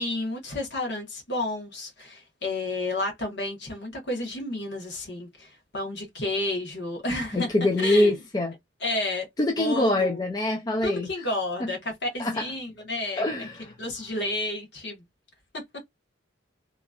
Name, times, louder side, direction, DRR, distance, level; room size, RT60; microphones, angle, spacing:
voice 1, 0.0-8.1 8.8-9.3 9.6-10.3 10.8-13.2 13.8-15.0, left 2 dB, 55° left, 1.2 m, -31 dB
voice 2, 7.3-8.5 9.4-11.1 11.6-11.7 12.2-12.3 13.2-13.5, left 2 dB, 20° left, 0.4 m, -24 dB
2.9 x 2.5 x 2.3 m
head